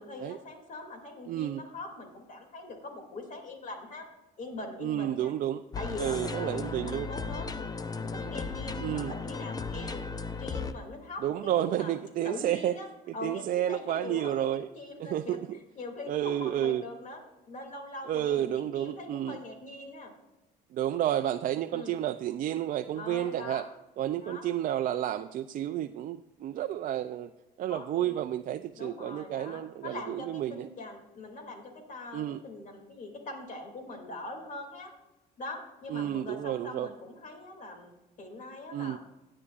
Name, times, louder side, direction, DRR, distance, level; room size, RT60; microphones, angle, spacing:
voice 1, 0.0-4.1 4.4-5.3 5.7-10.0 10.4-11.9 12.2-12.9 13.1-15.4 15.8-17.2 17.5-20.1 21.7-22.0 22.9-23.7 24.2-24.5 27.7-28.2 28.7-34.9 35.4-39.0, left 2 dB, 50° left, 3 dB, 2.6 m, -42 dB
voice 2, 1.3-1.6 4.8-5.6 6.0-7.1 8.8-9.1 11.2-12.7 13.1-14.7 15.0-15.6 16.1-16.8 18.1-19.4 20.7-23.7 24.0-27.3 27.6-30.7 32.1-32.4 35.9-36.9 38.7-39.0, right 11 dB, 55° right, 8 dB, 0.4 m, -31 dB
sound 1, 5.7-10.7, left 4 dB, 20° left, 0.6 m, -36 dB
16.5 x 9.6 x 2.5 m, 1.0 s
cardioid pair, 110°, 17 cm